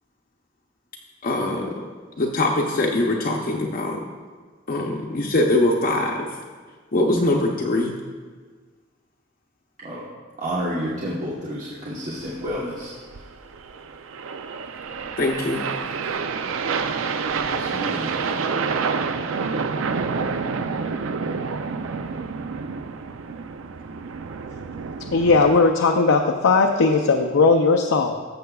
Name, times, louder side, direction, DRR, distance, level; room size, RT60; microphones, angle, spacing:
voice 1, 1.2-1.7 2.2-4.0 4.7-6.3 6.9-7.9 15.2-15.6, left 2 dB, 45° left, -1 dB, 0.7 m, -22 dB
voice 2, 10.4-12.9 17.5-18.1, equal, 40° right, -7 dB, 1.1 m, -30 dB
sound 1, 12.2-25.5, right 5 dB, 80° right, 0.5 m, -28 dB
voice 3, 25.1-28.3, left 4 dB, 90° left, 2 dB, 0.5 m, -18 dB
14.5 x 6.8 x 2.3 m, 1.5 s
head